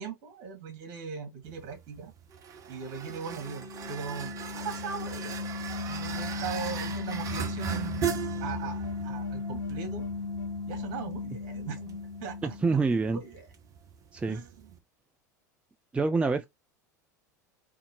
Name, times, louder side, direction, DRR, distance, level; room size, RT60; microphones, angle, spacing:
voice 1, 0.0-2.1 2.7-5.4 5.9-8.1 8.4-10.1 10.7-12.6 13.1-13.5 14.3-14.8, right 6 dB, 50° right, 2.0 m, -39 dB
sound 1, 1.4-14.8, right 8 dB, 35° right, 1.0 m, -39 dB
sound 2, 3.1-13.2, left 4 dB, 80° left, 1.0 m, -37 dB
voice 2, 12.4-13.2 14.1-14.4 15.9-16.5, right 4 dB, 10° right, 0.4 m, -26 dB
3.7 x 2.7 x 4.3 m
figure-of-eight pair, 80°, 10 cm